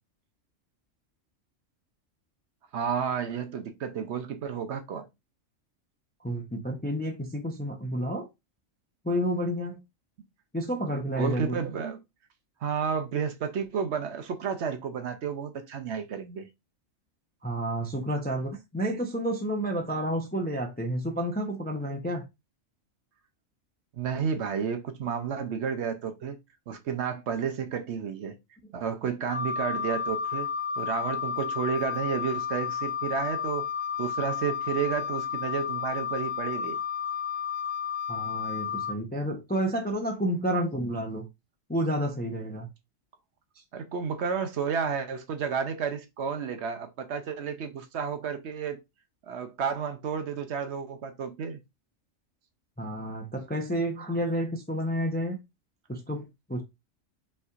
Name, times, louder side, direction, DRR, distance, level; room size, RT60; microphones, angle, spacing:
voice 1, 2.7-5.1 11.2-12.0 12.6-16.5 23.9-26.4 26.7-28.4 28.7-30.5 30.8-33.7 34.0-36.8 43.7-48.8 49.3-51.6, right 6 dB, 65° right, 0.8 m, -31 dB
voice 2, 6.2-8.3 9.0-9.8 10.5-11.6 17.4-22.2 38.1-41.3 41.7-42.7 52.8-55.4 55.9-56.6, equal, 10° left, 0.5 m, -30 dB
Wind instrument woodwind instrument, 29.3-38.9, left 7 dB, 85° left, 1.3 m, -32 dB
5.4 x 3.3 x 2.4 m
omnidirectional pair, 1.3 m